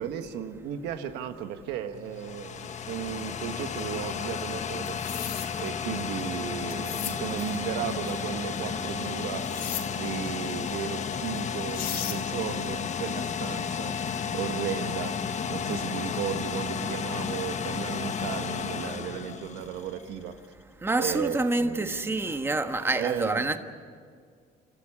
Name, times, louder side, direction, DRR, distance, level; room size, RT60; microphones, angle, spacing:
voice 1, 0.0-5.1 5.6-9.6 10.0-20.4 21.0-22.4 22.9-23.6, right 9 dB, 90° right, 1.5 m, -35 dB
sound 1, 1.9-20.0, left 6 dB, 45° left, 1.2 m, -33 dB
sound 2, 4.9-5.5 6.7-7.2 9.5-9.9 11.4-11.5 11.7-12.2, left 9 dB, 70° left, 3.2 m, -35 dB
voice 2, 20.8-23.6, right 2 dB, 15° right, 1.3 m, -27 dB
28.0 x 14.5 x 9.9 m
cardioid pair, 110°, 17 cm